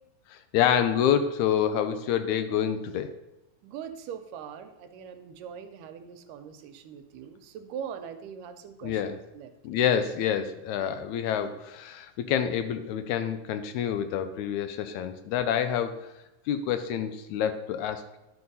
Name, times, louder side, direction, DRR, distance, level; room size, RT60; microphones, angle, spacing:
voice 1, 0.3-3.1 8.8-9.2 9.6-15.9 16.5-18.2, left 9 dB, 80° left, 9 dB, 1.8 m, -27 dB
voice 2, 3.6-9.0 9.3-9.5, right 8 dB, 80° right, 8 dB, 2.3 m, -41 dB
10.5 x 4.5 x 5.4 m, 0.95 s
omnidirectional pair, 3.8 m